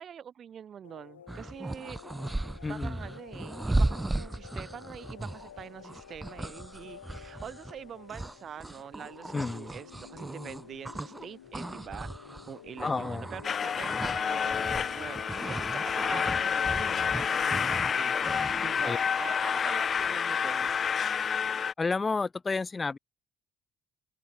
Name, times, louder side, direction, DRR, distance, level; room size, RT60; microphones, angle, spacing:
voice 1, 0.0-2.0 2.7-20.8, right 8 dB, 50° right, 1.2 m, -45 dB
sound 1, 0.8-17.9, left 10 dB, 85° left, 3.2 m, -51 dB
sound 2, 1.3-11.3 11.5-18.8, right 2 dB, 15° right, 0.6 m, -36 dB
voice 2, 2.6-3.0 9.3-9.7 12.8-13.3 18.8-19.0 21.8-23.0, left 4 dB, 25° left, 1.3 m, -31 dB
sound 3, 13.4-21.7, left 7 dB, 40° left, 0.5 m, -29 dB
open air
figure-of-eight pair, 50°, 0 cm